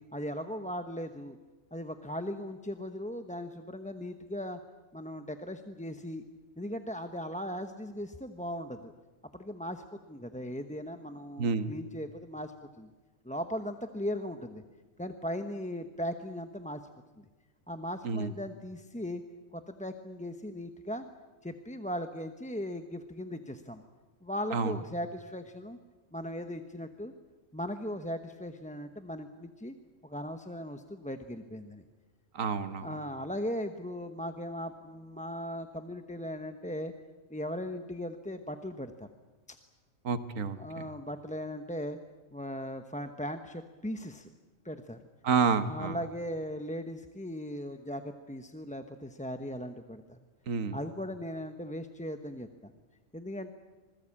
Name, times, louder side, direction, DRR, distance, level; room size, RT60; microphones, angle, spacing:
voice 1, 0.0-1.4 1.7-4.6 4.9-6.2 6.6-8.9 9.3-12.9 13.2-14.6 15.0-16.8 17.2-17.3 17.7-19.2 19.5-21.1 21.4-23.8 24.2-25.8 26.1-27.1 27.5-29.7 30.0-31.8 32.8-36.9 37.3-39.1 39.5-39.6 40.6-42.0 42.3-44.3 44.6-45.0 45.6-50.2 50.7-52.7 53.1-53.6, equal, 5° left, 7 dB, 0.8 m, -38 dB
voice 2, 11.4-11.7 18.0-18.3 24.5-24.8 32.3-32.9 40.0-40.6 45.2-46.0 50.5-50.8, right 5 dB, 85° right, 11 dB, 1.6 m, -29 dB
26.0 x 20.0 x 8.7 m, 1.2 s
omnidirectional pair, 1.3 m